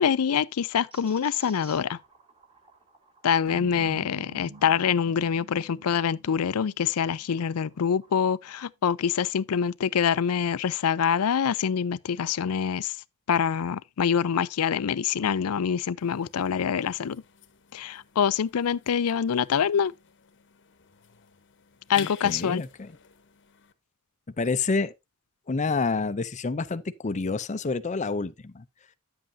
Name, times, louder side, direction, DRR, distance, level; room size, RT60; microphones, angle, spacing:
voice 1, 0.0-2.0 3.2-13.0 13.3-17.2 17.7-19.9 21.9-22.6, left 7 dB, 85° left, 0.4 m, -25 dB
sound 1, 0.9-6.5 7.0-8.2, right 3 dB, 25° right, 2.7 m, -56 dB
sound 2, 3.5-7.8, right 2 dB, 65° right, 0.7 m, -48 dB
sound 3, 16.0-23.7, left 10 dB, 55° left, 0.9 m, -49 dB
voice 2, 22.0-22.9 24.4-24.9 25.5-28.6, left 4 dB, 35° left, 0.5 m, -28 dB
10.5 x 7.7 x 2.7 m
head